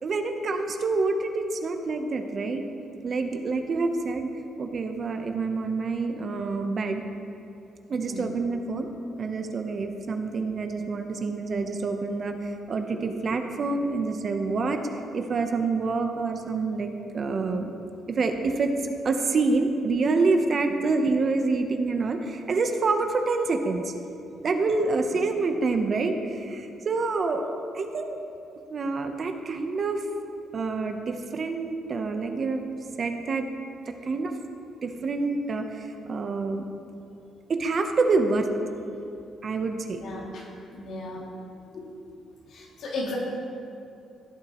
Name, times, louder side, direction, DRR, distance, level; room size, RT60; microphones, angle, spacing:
voice 1, 0.0-2.6 3.0-7.0 7.9-8.9 9.2-14.8 15.1-17.7 18.1-18.7 19.0-23.9 24.4-27.5 27.7-28.2 28.7-30.1 30.5-32.6 33.0-33.5 33.9-34.4 34.8-36.6 37.5-38.5 39.4-40.0, right 3 dB, 45° right, 5 dB, 0.9 m, -27 dB
voice 2, 7.9-8.2 12.9-13.0 40.0-41.3 41.7-41.8 42.5-43.2, left 2 dB, 75° left, -4 dB, 2.6 m, -36 dB
15.5 x 8.8 x 3.1 m, 2.6 s
cardioid pair, 90°, 0 cm